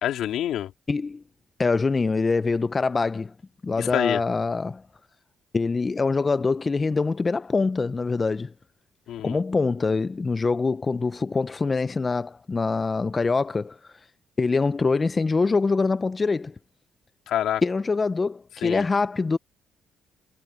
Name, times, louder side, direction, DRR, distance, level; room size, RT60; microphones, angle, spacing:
voice 1, 0.0-0.7 3.8-4.2 9.1-9.4 17.3-17.6 18.6-18.8, left 11 dB, 80° left, 3.1 m, -26 dB
voice 2, 0.9-1.2 1.6-3.3 3.6-4.8 5.5-8.5 9.2-13.8 14.4-16.5 17.6-19.4, left 4 dB, 30° left, 0.5 m, -24 dB
cardioid pair, 90°, 0 cm